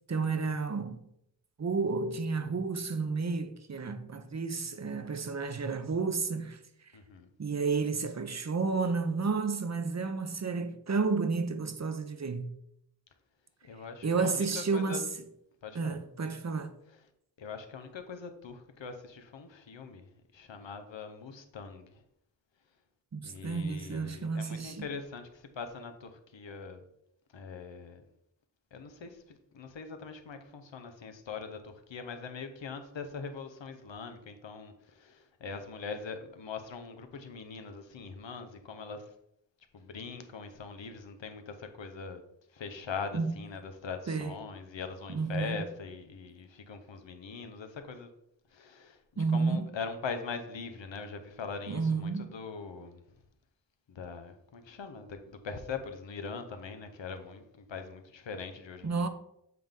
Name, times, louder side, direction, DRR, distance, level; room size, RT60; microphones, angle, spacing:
voice 1, 0.1-1.0 1.6-6.6 7.4-12.5 14.0-15.1 15.7-16.7 23.1-24.9 43.1-43.3 44.1-44.3 45.1-45.6 49.2-49.7 51.7-52.3 58.8-59.1, right 4 dB, 40° right, 0.7 m, -31 dB
voice 2, 6.9-7.3 13.6-15.0 15.6-16.0 17.4-20.1 20.3-22.0 23.2-26.8 27.3-28.0 28.7-39.1 39.7-42.2 42.5-48.1 48.5-53.0 53.9-59.1, left 5 dB, 85° left, 0.8 m, -42 dB
7.6 x 3.5 x 3.7 m
wide cardioid pair, 60°, 44 cm